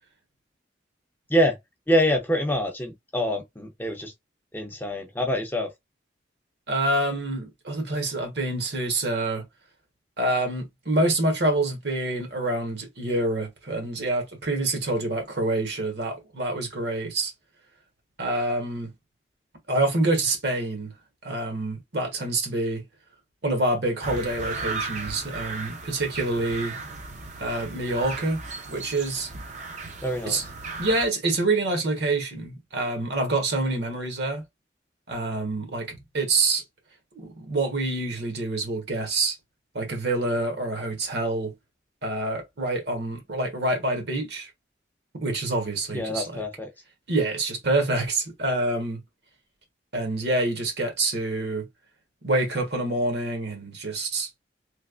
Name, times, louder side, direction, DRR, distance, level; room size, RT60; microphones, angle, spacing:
voice 1, 1.9-4.1 4.5-5.7 30.0-30.4 45.9-46.7, equal, 10° left, 0.5 m, -25 dB
voice 2, 6.7-9.4 10.2-17.3 18.2-18.9 19.7-20.9 21.2-22.8 23.4-26.8 27.4-28.4 28.7-29.3 30.2-30.4 30.7-34.4 35.1-36.6 37.1-39.3 39.7-41.5 42.0-44.5 45.2-46.4 47.1-49.0 49.9-51.7 52.2-54.3, right 2 dB, 65° right, 1.2 m, -26 dB
sound 1, 24.0-31.1, right 3 dB, 40° right, 0.5 m, -36 dB
3.2 x 2.8 x 2.4 m
head